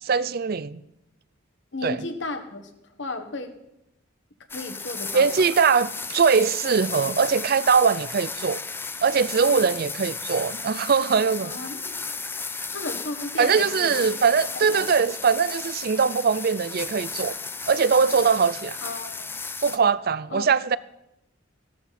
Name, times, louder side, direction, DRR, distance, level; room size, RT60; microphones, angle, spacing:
voice 1, 0.0-0.8 1.8-2.0 5.1-8.6 9.0-11.5 13.4-17.4 17.7-18.8 19.6-20.8, right 5 dB, 50° right, 0.4 m, -21 dB
voice 2, 1.7-2.7 3.0-3.5 4.5-5.5 9.4-9.6 11.4-12.0 12.7-14.1 14.7-15.1 18.8-19.3 20.3-20.5, left 2 dB, 60° left, 1.4 m, -34 dB
sound 1, 4.5-19.8, left 4 dB, 10° left, 0.4 m, -34 dB
15.5 x 12.5 x 4.2 m
head